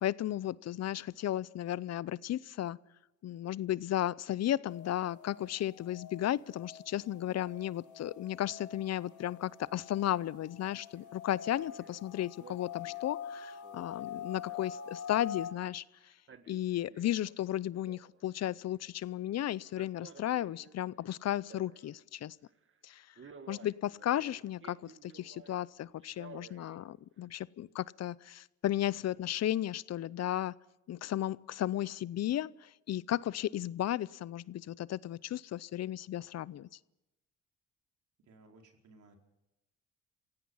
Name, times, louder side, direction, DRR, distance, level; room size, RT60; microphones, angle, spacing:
voice 1, 0.0-2.8 3.2-15.8 16.5-22.4 22.8-23.1 23.5-30.5 30.9-36.7, left 12 dB, 60° left, 21 dB, 0.6 m, -34 dB
sound 1, 4.7-15.5, left 8 dB, 80° left, 4.4 m, -45 dB
Male speech man speaking, 10.9-11.2 11.5-12.0 12.4-15.6 16.1-17.4 17.7-18.5 19.7-22.1 22.5-22.7 23.2-25.6 26.0-26.8 27.2-27.3, right 5 dB, 40° right, 1.7 m, -55 dB
voice 2, 38.2-39.2, right 2 dB, 75° right, 2 dB, 4.6 m, -59 dB
27.5 x 17.0 x 5.6 m, 0.93 s
cardioid pair, 90°, 30 cm